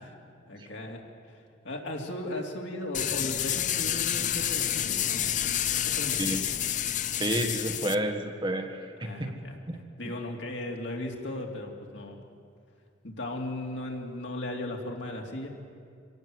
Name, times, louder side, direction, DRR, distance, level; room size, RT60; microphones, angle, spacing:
voice 1, 0.4-5.2 5.7-6.4 9.0-12.2 13.0-15.5, left 1 dB, 70° left, 0 dB, 2.9 m, -37 dB
sound 1, 2.9-7.9, left 10 dB, 40° left, 0.6 m, -29 dB
voice 2, 7.2-9.3 9.7-9.8, right 1 dB, 25° right, 4 dB, 1.6 m, -30 dB
25.0 x 18.0 x 7.9 m, 2.3 s
head